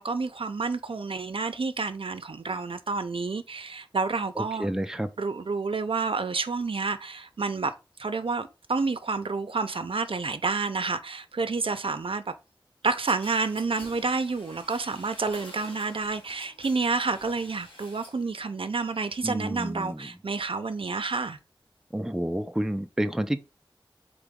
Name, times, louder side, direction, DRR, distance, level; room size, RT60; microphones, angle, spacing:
voice 1, 0.0-4.7 5.2-7.7 8.0-12.3 12.8-21.4, right 4 dB, 80° right, 0.5 m, -29 dB
voice 2, 4.4-5.1 19.2-20.1 21.9-23.4, right 1 dB, 5° right, 0.4 m, -30 dB
sound 1, 13.1-18.3 18.6-19.2, left 1 dB, 90° left, 2.1 m, -49 dB
3.9 x 3.8 x 3.5 m
wide cardioid pair, 50°, 9 cm